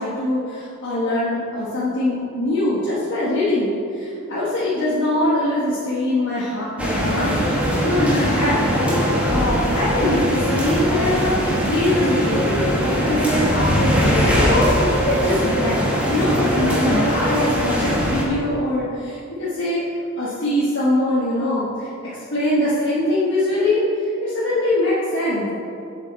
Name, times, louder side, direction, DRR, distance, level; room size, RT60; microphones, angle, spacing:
voice 1, 0.0-14.6 15.1-19.8 20.2-23.8 24.2-25.5, left 1 dB, 60° left, -9 dB, 1.3 m, -22 dB
sound 1, 6.8-18.2, equal, 5° right, 1.2 m, -21 dB
7.3 x 6.6 x 4.2 m, 2.7 s
head